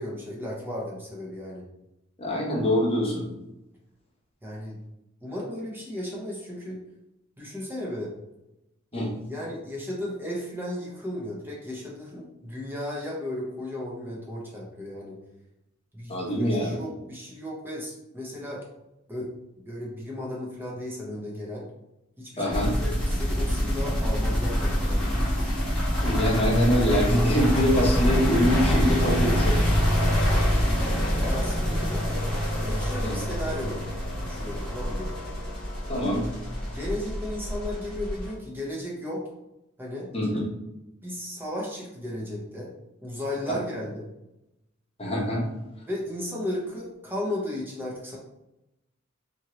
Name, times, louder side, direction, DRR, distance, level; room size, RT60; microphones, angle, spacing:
voice 1, 0.0-1.7 4.4-4.8 5.2-6.8 7.4-8.1 8.9-15.2 15.9-18.6 19.1-19.3 19.7-21.7 22.2-25.5 31.1-32.1 32.6-33.8 34.1-35.2 36.7-39.3 39.8-40.1 41.0-42.7 43.0-44.1 45.9-48.2, left 1 dB, 10° right, -4 dB, 0.7 m, -35 dB
voice 2, 2.2-3.3 8.9-9.1 16.1-16.8 22.4-22.7 26.0-29.7 33.0-33.1 35.9-36.3 40.1-40.4 45.0-45.5, equal, 30° left, -3 dB, 0.9 m, -24 dB
sound 1, 22.5-38.3, equal, 5° left, 1.0 m, -25 dB
2.7 x 2.6 x 3.0 m, 0.90 s
head